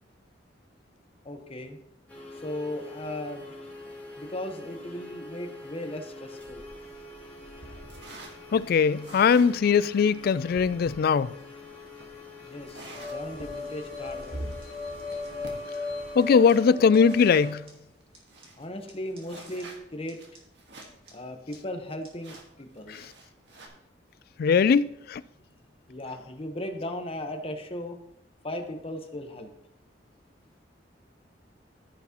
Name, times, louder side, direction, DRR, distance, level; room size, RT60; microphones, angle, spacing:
voice 1, 1.2-1.8 2.4-3.5 4.2-6.6 12.5-14.5 18.6-20.2 21.1-23.0 25.9-28.0 28.4-29.5, left 1 dB, 30° left, 1.1 m, -37 dB
sound 1, 2.1-16.7, left 3 dB, 10° left, 2.8 m, -46 dB
sound 2, 6.4-17.6 18.0-18.1 18.3-21.1 21.4-21.5 22.2-23.7, right 1 dB, 70° right, 1.6 m, -46 dB
voice 2, 8.5-11.3 16.2-17.6 24.4-25.2, left 6 dB, 55° left, 0.3 m, -21 dB
sound 3, 12.9-17.7 18.1-18.2 18.4-18.5 18.9-19.0 19.2-19.3 19.6-19.7 20.1-20.4 20.8-21.1 21.5-21.6 22.1-22.2 22.3-22.4, left 3 dB, 30° right, 2.3 m, -37 dB
14.5 x 6.0 x 3.0 m
head